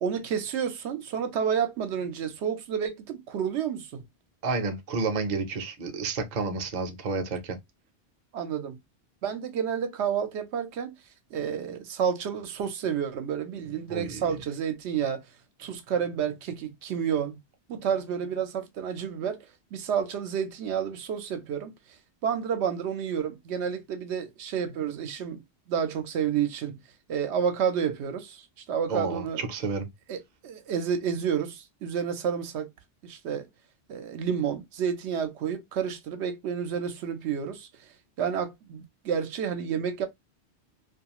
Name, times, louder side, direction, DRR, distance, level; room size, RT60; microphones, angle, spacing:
voice 1, 0.0-4.0 8.3-8.8 9.2-10.9 11.3-15.2 15.6-17.4 17.7-19.4 19.7-21.7 22.2-25.4 25.7-26.8 27.1-29.4 30.1-32.7 33.0-33.5 33.9-37.7 38.2-40.1, right 7 dB, 80° right, 0.9 m, -30 dB
voice 2, 4.4-7.6 13.9-14.4 28.9-29.9, right 4 dB, 50° right, 0.6 m, -30 dB
2.5 x 2.3 x 2.8 m
omnidirectional pair, 1.1 m